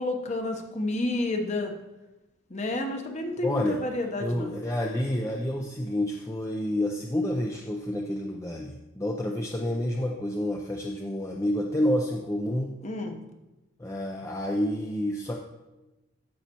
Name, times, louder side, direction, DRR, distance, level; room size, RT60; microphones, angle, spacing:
voice 1, 0.0-1.7 2.5-4.5 12.8-13.2, left 2 dB, 30° left, 4 dB, 0.9 m, -30 dB
voice 2, 3.4-3.8 4.2-12.7 13.8-15.3, left 1 dB, 15° left, 0 dB, 0.4 m, -29 dB
14.0 x 5.6 x 2.9 m, 1.0 s
head